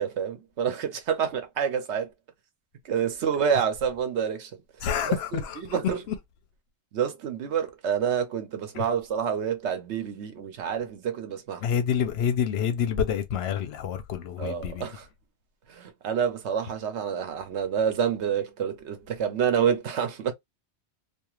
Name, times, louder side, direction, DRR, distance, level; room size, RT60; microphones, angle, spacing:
voice 1, 0.0-2.1 2.8-4.5 5.3-5.4 5.7-6.0 6.9-11.6 14.4-15.1 15.7-20.3, right 8 dB, 90° right, 1.0 m, -28 dB
voice 2, 4.8-5.8 6.1-6.2 8.7-8.9 11.6-14.9, left 8 dB, 70° left, 0.9 m, -28 dB
2.5 x 2.4 x 3.0 m
omnidirectional pair, 1.1 m